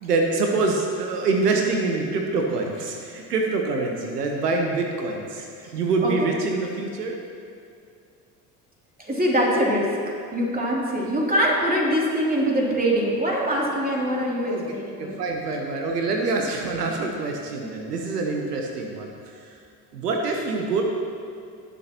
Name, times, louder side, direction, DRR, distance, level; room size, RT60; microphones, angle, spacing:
voice 1, 0.0-7.2 14.5-14.7 15.0-19.1 19.9-20.8, right 3 dB, 85° right, 2 dB, 1.0 m, -25 dB
voice 2, 9.0-10.0 10.3-15.2, equal, 20° right, -3 dB, 2.9 m, -23 dB
19.5 x 6.9 x 3.0 m, 2.3 s
hypercardioid pair, 65°, 46 cm